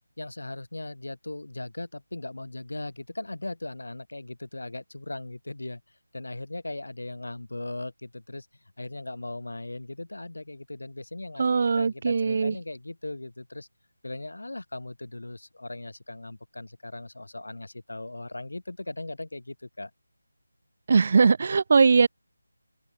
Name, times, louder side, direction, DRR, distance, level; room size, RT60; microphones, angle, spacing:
voice 1, 0.2-5.8 6.1-8.5 8.8-11.4 11.8-13.7 14.0-19.9, left 2 dB, 85° left, 4.7 m, -38 dB
voice 2, 11.4-12.6 20.9-22.1, right 5 dB, 35° right, 0.4 m, -20 dB
open air
figure-of-eight pair, 175°, 0 cm